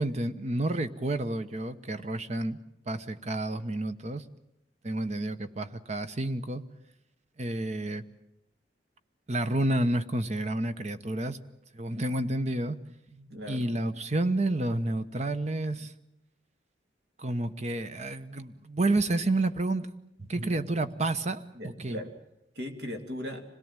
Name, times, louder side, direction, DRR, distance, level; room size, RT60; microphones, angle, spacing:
voice 1, 0.0-2.6 2.9-4.2 4.8-6.6 7.4-8.0 9.3-11.4 11.7-12.8 13.5-15.9 17.2-19.9 20.2-22.0, right 2 dB, 40° right, 11 dB, 1.0 m, -30 dB
voice 2, 13.1-13.8 20.4-20.6 21.5-22.1 22.5-23.4, left 1 dB, 60° right, 5 dB, 2.8 m, -39 dB
26.0 x 17.5 x 8.9 m, 0.85 s
head